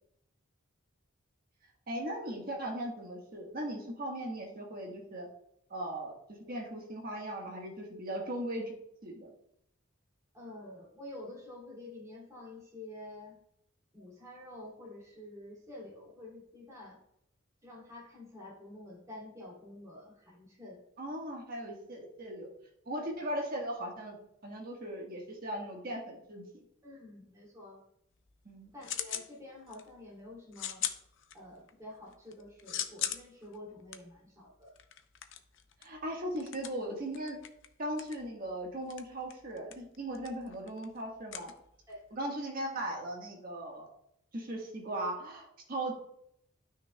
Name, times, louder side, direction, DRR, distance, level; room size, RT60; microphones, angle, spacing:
voice 1, 1.9-5.3 5.7-8.7 9.0-9.3 21.0-22.5 22.8-24.2 24.4-26.4 28.4-28.7 29.1-29.2 35.8-37.4 37.8-41.5 42.1-43.9 44.3-45.9, right 1 dB, 45° right, 0 dB, 1.5 m, -38 dB
voice 2, 10.3-13.4 13.9-17.0 17.6-20.8 26.8-27.8 28.7-30.8 31.3-34.7 41.9-42.0, left 1 dB, 15° right, -5 dB, 2.6 m, -48 dB
sound 1, 28.1-29.3 29.7-30.1 30.5-31.7 32.1-42.1, left 10 dB, 60° left, 0.6 m, -41 dB
12.5 x 6.1 x 2.3 m, 0.75 s
head